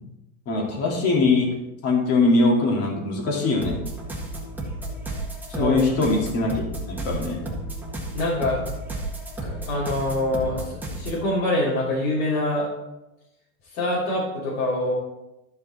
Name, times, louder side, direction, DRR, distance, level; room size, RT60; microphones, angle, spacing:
voice 1, 0.5-1.5 1.8-3.8 5.6-7.4, left 3 dB, 35° left, 0 dB, 2.4 m, -22 dB
sound 1, 3.6-11.2, right 1 dB, 5° right, 1.5 m, -33 dB
voice 2, 5.5-5.8 8.1-8.6 9.4-12.6 13.7-14.9, left 1 dB, 75° left, -8 dB, 3.3 m, -25 dB
12.5 x 5.4 x 4.2 m, 0.97 s
supercardioid pair, 140°, 44 cm